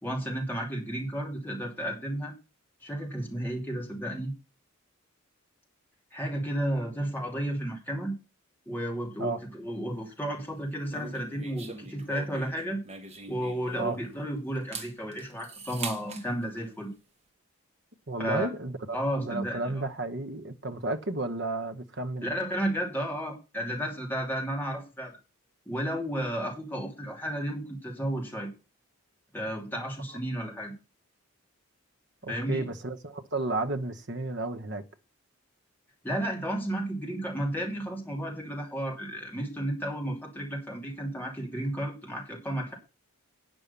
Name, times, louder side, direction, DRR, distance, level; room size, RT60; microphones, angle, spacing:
voice 1, 0.0-2.3 2.8-4.3 6.1-8.1 8.7-12.8 13.3-16.9 18.2-18.5 18.9-19.8 22.2-25.1 25.7-28.5 29.3-30.7 32.3-32.6 36.0-42.7, right 1 dB, 10° left, 2.8 m, -33 dB
sound 1, 10.9-14.1 14.5-16.3, right 4 dB, 30° right, 1.3 m, -42 dB
voice 2, 18.1-22.3 32.2-34.8, right 2 dB, 50° right, 1.2 m, -32 dB
9.6 x 6.3 x 6.9 m
head